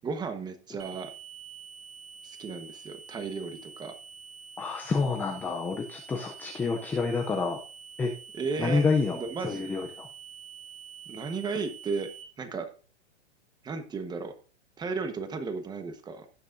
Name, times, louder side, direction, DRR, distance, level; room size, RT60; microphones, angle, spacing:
voice 1, 0.0-1.1 2.2-3.9 8.3-8.8 9.2-9.7 11.1-12.1 12.4-12.7 13.6-14.3 14.8-16.3, right 4 dB, 10° right, 8 dB, 1.1 m, -34 dB
sound 1, 0.8-12.2, right 7 dB, 40° right, 2.6 m, -47 dB
voice 2, 4.6-7.6 8.0-8.1 8.6-10.1, left 4 dB, 5° left, 3 dB, 0.4 m, -28 dB
17.5 x 6.5 x 2.6 m, 0.39 s
hypercardioid pair, 155°, 35 cm